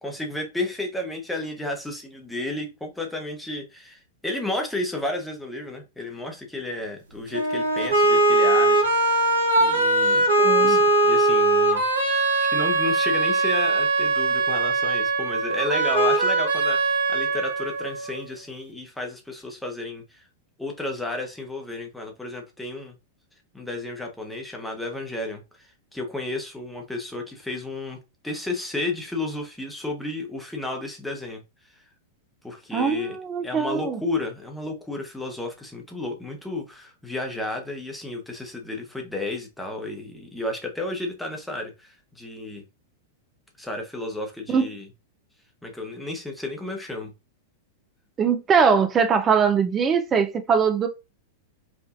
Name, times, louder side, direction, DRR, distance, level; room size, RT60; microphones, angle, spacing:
voice 1, 0.0-8.9 9.6-10.3 10.6-20.2 20.6-22.9 23.5-28.0 28.2-31.4 32.4-33.2 33.4-42.6 43.6-44.9 45.6-47.1, left 2 dB, 5° left, 1.1 m, -32 dB
sound 1, 7.3-18.3, right 2 dB, 70° right, 0.9 m, -21 dB
voice 2, 10.4-10.8 32.7-34.0 44.5-44.6 48.2-50.9, right 6 dB, 20° right, 0.5 m, -21 dB
5.0 x 2.5 x 2.5 m
figure-of-eight pair, 95°, 0 cm